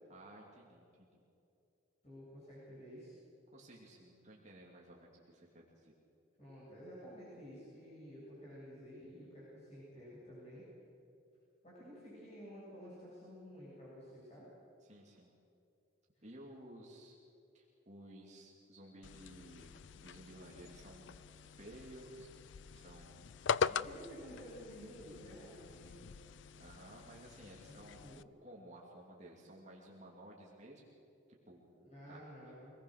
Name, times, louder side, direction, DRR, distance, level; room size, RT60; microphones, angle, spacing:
voice 1, 0.1-1.2 3.5-5.9 14.8-15.3 16.2-17.2 17.5-19.7 20.0-22.3 22.7-23.7 26.6-30.9 31.5-31.7 32.1-32.5, right 1 dB, 35° right, -3 dB, 2.8 m, -55 dB
voice 2, 2.0-3.2 6.4-10.7 11.6-14.5 16.2-16.3 23.6-26.0 27.6-28.4 31.7-32.7, equal, 35° left, -8 dB, 7.9 m, -52 dB
sound 1, 19.0-28.2, left 6 dB, 65° left, 0.4 m, -42 dB
25.0 x 19.5 x 6.6 m, 2.7 s
head